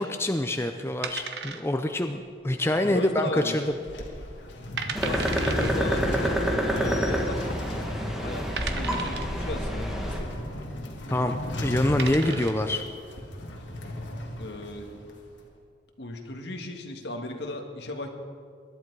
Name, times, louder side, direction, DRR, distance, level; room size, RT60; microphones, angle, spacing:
voice 1, 0.0-3.6 11.1-12.8, left 1 dB, 15° left, 6 dB, 0.5 m, -26 dB
sound 1, 1.0-2.0 2.3-2.4 3.0-3.4 3.7-3.8 4.4-4.5 4.8-5.7 6.8-6.9 7.6-7.7 8.6-9.4 11.2-11.4 11.8-12.7, right 6 dB, 65° right, 1.0 m, -35 dB
voice 2, 2.8-3.8 5.0-7.4 8.1-10.3 14.4-14.9 16.0-18.1, left 1 dB, 65° left, 4 dB, 1.7 m, -36 dB
sound 2, 3.5-15.4, left 1 dB, 85° left, 1.7 m, -37 dB
sound 3, 4.9-10.2, equal, 5° right, 1.7 m, -27 dB
20.5 x 11.5 x 4.7 m, 2.1 s
head